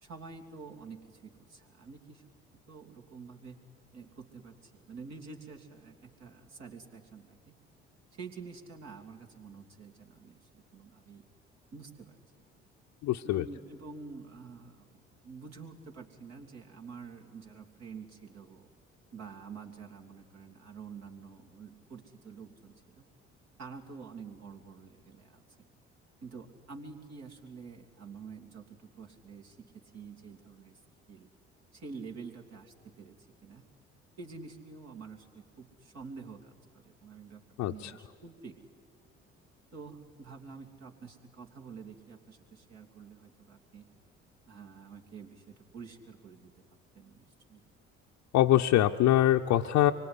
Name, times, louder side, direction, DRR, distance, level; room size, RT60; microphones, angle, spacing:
voice 1, 0.0-2.2 2.7-3.6 3.9-7.5 8.1-11.2 11.7-12.2 13.2-18.7 19.1-23.1 23.6-25.4 26.2-30.8 31.1-31.3 31.7-33.1 33.4-33.7 34.2-36.5 36.8-37.4 37.7-38.6 39.7-43.9 44.5-46.5 46.9-47.2 47.5-47.6, right 5 dB, 50° right, 1 dB, 3.2 m, -48 dB
voice 2, 13.0-13.4 37.6-37.9 48.3-49.9, left 13 dB, 55° left, 2 dB, 0.8 m, -24 dB
25.0 x 24.0 x 9.9 m, 2.1 s
figure-of-eight pair, 50°, 33 cm